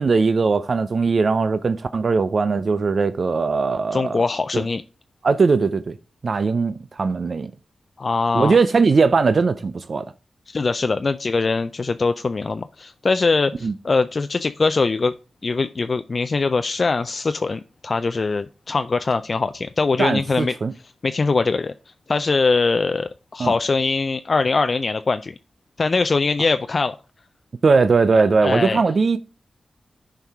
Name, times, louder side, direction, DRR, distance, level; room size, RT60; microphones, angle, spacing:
voice 1, 0.0-4.2 4.5-4.6 5.2-6.0 6.2-7.5 8.3-10.1 13.6-13.7 20.0-20.7 23.4-23.5 27.6-29.2, right 4 dB, 60° right, 0.4 m, -19 dB
voice 2, 3.9-4.8 8.0-8.6 10.5-15.1 15.4-20.5 20.8-21.7 22.1-25.3 25.8-27.0 28.1-28.8, left 4 dB, 50° left, 0.3 m, -22 dB
11.5 x 4.6 x 3.5 m
cardioid pair, 60°, 0 cm